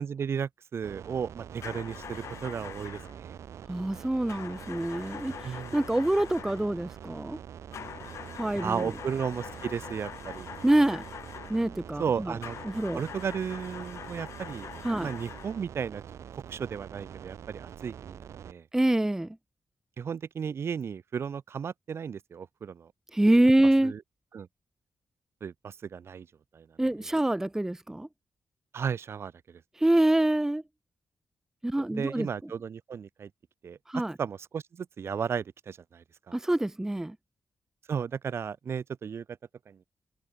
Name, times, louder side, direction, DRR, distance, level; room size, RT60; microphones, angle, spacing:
voice 1, 0.0-3.3 5.4-5.8 8.6-10.5 12.0-12.6 12.9-14.7 15.0-16.0 16.3-18.6 20.0-22.9 23.8-24.0 24.3-24.5 25.4-26.3 26.5-26.7 28.7-29.6 31.8-33.3 33.6-36.4 37.9-39.2 39.7-39.8, right 7 dB, 60° right, 1.7 m, -34 dB
sound 1, 0.8-18.5, right 9 dB, 85° right, 2.6 m, -45 dB
sound 2, 1.6-3.2 4.3-6.7 7.7-11.7 12.4-15.6, left 9 dB, 80° left, 1.2 m, -44 dB
voice 2, 3.7-7.4 8.3-8.9 10.6-11.0 11.5-12.3 12.6-13.0 14.8-15.1 18.7-19.4 23.1-23.9 26.8-28.1 29.8-30.6 31.6-32.3 33.9-34.1 36.3-37.2, right 1 dB, 10° right, 0.8 m, -26 dB
cardioid pair, 105°, 5 cm